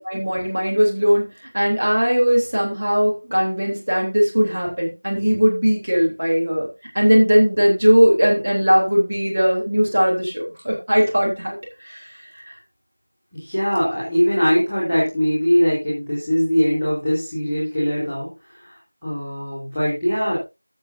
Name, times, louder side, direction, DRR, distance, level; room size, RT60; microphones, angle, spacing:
voice 1, 0.1-1.3 1.5-6.7 6.9-11.6 11.8-12.0 12.3-12.4, equal, 25° right, -2 dB, 3.3 m, -18 dB
voice 2, 13.3-20.4, equal, ahead, -23 dB, 2.6 m, -21 dB
20.5 x 7.3 x 2.7 m, 0.26 s
figure-of-eight pair, 180°, 0 cm